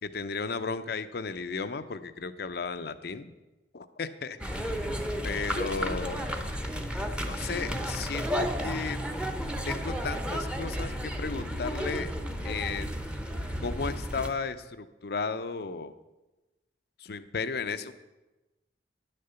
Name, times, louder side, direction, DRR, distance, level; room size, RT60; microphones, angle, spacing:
voice 1, 0.0-3.2 3.7-4.6 5.2-6.2 7.3-9.0 9.7-12.1 12.4-13.1 13.6-15.9 17.0-17.9, left 4 dB, 60° left, 11 dB, 0.6 m, -34 dB
sound 1, 4.4-14.3, equal, 5° right, 0.8 m, -32 dB
10.5 x 6.7 x 6.9 m, 1.1 s
head